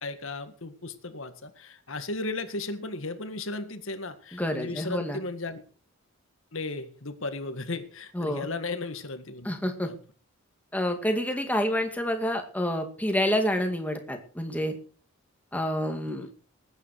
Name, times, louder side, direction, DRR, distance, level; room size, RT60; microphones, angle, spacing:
voice 1, 0.0-5.6 6.5-9.5 9.9-10.0 16.1-16.3, left 2 dB, 65° left, 9 dB, 1.8 m, -35 dB
voice 2, 4.3-5.2 8.1-8.5 9.4-9.9 10.7-14.7 15.5-16.3, equal, 5° left, 5 dB, 2.2 m, -28 dB
19.5 x 9.5 x 4.8 m, 0.41 s
head